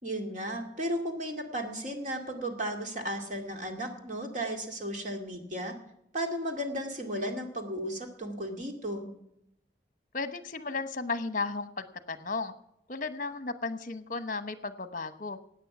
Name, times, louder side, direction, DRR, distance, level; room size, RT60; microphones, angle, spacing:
voice 1, 0.0-5.8 6.1-9.1, equal, 40° right, 3 dB, 2.2 m, -34 dB
voice 2, 10.1-12.5 12.9-15.4, left 3 dB, 45° left, 11 dB, 1.0 m, -34 dB
17.0 x 9.5 x 6.0 m, 0.78 s
head